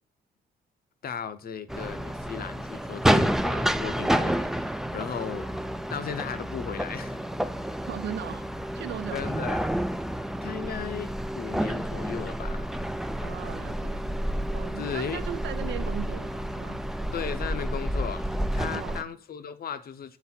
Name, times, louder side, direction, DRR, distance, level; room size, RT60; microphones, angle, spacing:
voice 1, 1.0-5.5 5.9-7.2 9.1-9.7 10.4-11.1 11.4-12.8 14.8-15.2 15.6-15.7 17.1-20.2, left 7 dB, 50° left, 0.7 m, -36 dB
sound 1, 1.7-19.0, equal, ahead, 0.3 m, -29 dB
voice 2, 7.9-8.5 8.7-9.3 13.2-14.1 14.5-16.8 18.6-19.1, right 11 dB, 60° right, 0.5 m, -38 dB
7.0 x 4.1 x 4.3 m
cardioid pair, 90°, 20 cm